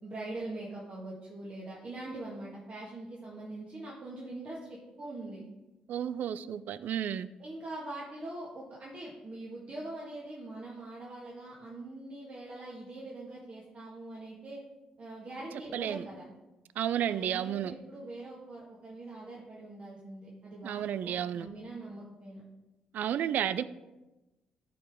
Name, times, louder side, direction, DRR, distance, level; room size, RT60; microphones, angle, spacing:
voice 1, 0.0-5.4 7.4-14.6 15.0-16.3 17.0-22.4, right 2 dB, 40° right, -5 dB, 1.7 m, -43 dB
voice 2, 5.9-7.3 15.7-16.0 16.8-17.7 20.6-21.5 22.9-23.6, right 10 dB, 55° right, 16 dB, 0.3 m, -32 dB
13.0 x 4.6 x 3.6 m, 1.0 s
figure-of-eight pair, 45°, 3 cm